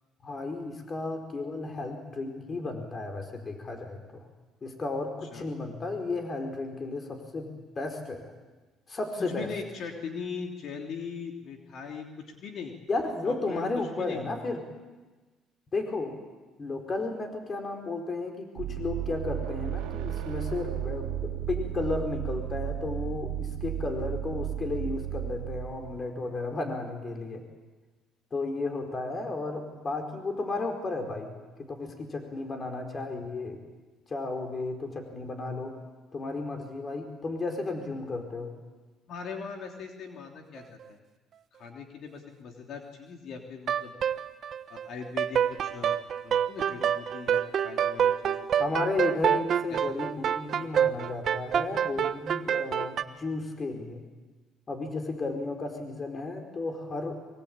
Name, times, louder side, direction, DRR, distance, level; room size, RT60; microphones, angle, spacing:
voice 1, 0.2-4.2 4.6-8.3 8.9-9.5 12.9-14.6 15.7-16.2 16.6-27.4 28.3-31.3 31.6-33.6 34.1-35.7 36.1-38.5 48.6-54.0 54.7-57.2, left 3 dB, 35° left, 3 dB, 4.8 m, -33 dB
voice 2, 9.2-12.0 12.4-12.7 13.2-14.2 39.1-41.0 41.6-43.9 44.7-46.0 46.2-48.7 49.7-49.8, left 5 dB, 60° left, 2 dB, 3.3 m, -40 dB
sound 1, 18.6-26.0, right 11 dB, 80° right, 2.2 m, -34 dB
sound 2, 43.7-44.9 45.2-53.0, right 9 dB, 55° right, 1.3 m, -26 dB
24.5 x 23.5 x 8.9 m, 1.3 s
supercardioid pair, 80°, 0 cm